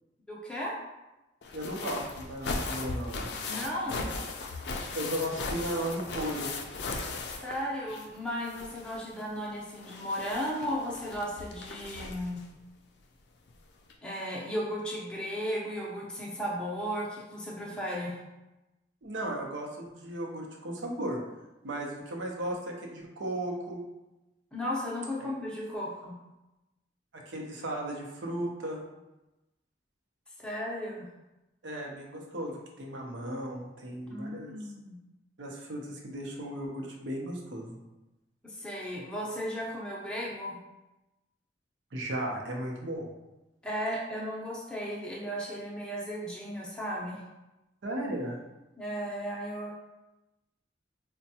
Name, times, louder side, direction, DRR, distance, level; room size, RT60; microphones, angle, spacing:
voice 1, 0.3-0.8 3.4-4.1 7.3-12.4 14.0-18.2 24.5-26.2 30.4-31.1 34.1-35.0 38.4-40.6 43.6-47.2 48.8-49.7, equal, 5° left, -5 dB, 0.6 m, -35 dB
sound 1, 1.4-8.2 8.4-12.4 13.5-13.6 13.9-14.0, left 3 dB, 60° left, 0.4 m, -38 dB
voice 2, 1.5-3.3 4.9-6.5 19.0-21.2 21.6-23.8 27.3-28.8 31.6-34.5 35.4-37.7 41.9-43.1 47.8-48.4, right 1 dB, 80° right, 0 dB, 0.7 m, -35 dB
4.4 x 2.2 x 2.7 m, 1.0 s
head